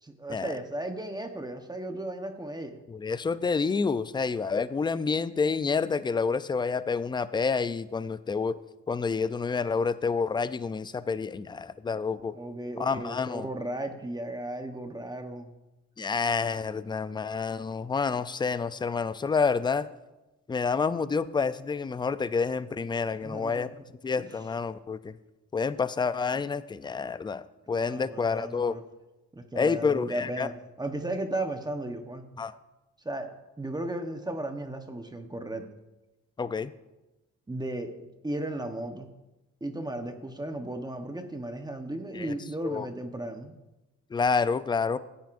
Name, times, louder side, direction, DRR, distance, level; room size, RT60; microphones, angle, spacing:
voice 1, 0.0-2.8 12.3-15.5 23.2-23.8 24.1-24.3 27.7-28.8 29.3-32.3 33.0-35.6 37.5-39.1 39.6-43.6, right 1 dB, 15° right, 6 dB, 1.0 m, -35 dB
voice 2, 2.9-8.6 8.9-12.3 12.8-13.5 16.0-19.9 20.5-23.7 24.0-25.1 25.5-28.8 29.6-30.5 32.4-32.5 36.4-36.7 42.2-42.3 42.6-42.9 44.1-45.0, left 5 dB, 15° left, 14 dB, 0.4 m, -28 dB
15.0 x 9.1 x 2.6 m, 1.0 s
cardioid pair, 90°, 30 cm